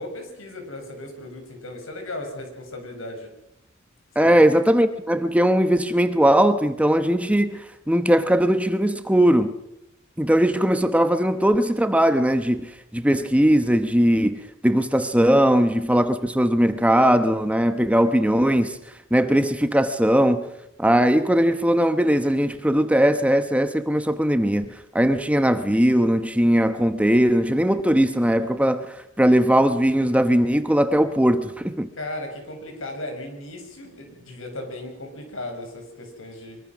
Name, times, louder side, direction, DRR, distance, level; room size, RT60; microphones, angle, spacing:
voice 1, 0.0-3.3 4.2-4.4 32.0-36.6, left 1 dB, 75° left, 7.0 m, -36 dB
voice 2, 4.1-9.6 10.2-18.8 19.1-20.4 20.8-31.9, equal, 5° right, 1.0 m, -19 dB
24.0 x 23.5 x 6.2 m
head